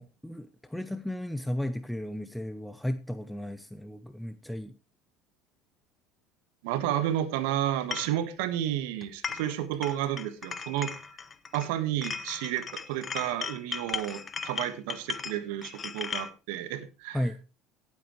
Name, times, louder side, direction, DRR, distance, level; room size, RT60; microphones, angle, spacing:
voice 1, 0.0-4.7 17.1-17.4, left 1 dB, 5° left, 11 dB, 0.8 m, -34 dB
voice 2, 6.6-10.9 11.5-17.2, right 12 dB, 75° right, 11 dB, 1.5 m, -31 dB
sound 1, 7.9-8.1 9.0-9.5 9.8-11.7 12.0-16.3, left 6 dB, 35° left, 1.1 m, -37 dB
18.0 x 8.1 x 3.2 m, 0.29 s
hypercardioid pair, 75°, 0 cm